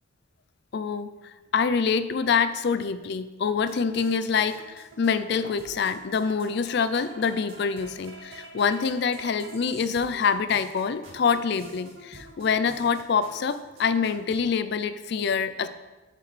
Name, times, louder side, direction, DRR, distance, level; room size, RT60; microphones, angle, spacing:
voice 1, 0.7-15.7, left 6 dB, 55° left, 12 dB, 0.4 m, -26 dB
sound 1, 3.5-14.4, right 2 dB, 70° right, 2.0 m, -47 dB
11.0 x 5.8 x 3.2 m, 1.2 s
head